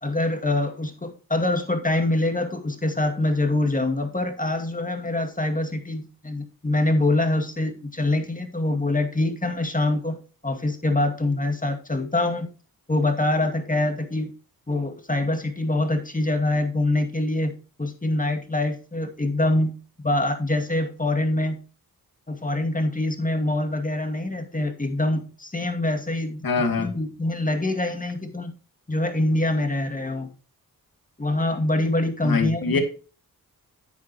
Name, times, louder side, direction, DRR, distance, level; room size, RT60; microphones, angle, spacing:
voice 1, 0.0-12.5 12.9-14.3 14.7-19.8 20.0-21.6 22.3-26.5 26.8-28.5 28.9-30.3 31.2-32.8, left 2 dB, 20° left, 5 dB, 2.3 m, -25 dB
voice 2, 26.4-26.9 32.2-32.8, left 4 dB, 70° left, 5 dB, 2.3 m, -23 dB
10.5 x 8.4 x 3.0 m, 0.36 s
cardioid pair, 50°, 36 cm